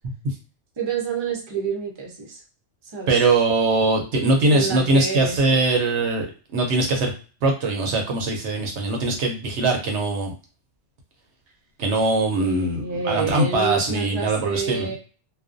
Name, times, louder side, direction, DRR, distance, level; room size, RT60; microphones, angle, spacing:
voice 1, 0.8-2.4 2.8-3.2 4.5-5.6 12.4-15.0, right 5 dB, 30° right, 1 dB, 0.5 m, -28 dB
voice 2, 3.1-6.3 6.5-7.1 7.4-10.3 11.8-14.9, right 2 dB, 75° right, 2 dB, 0.9 m, -21 dB
2.4 x 2.1 x 2.5 m, 0.37 s
omnidirectional pair, 1.2 m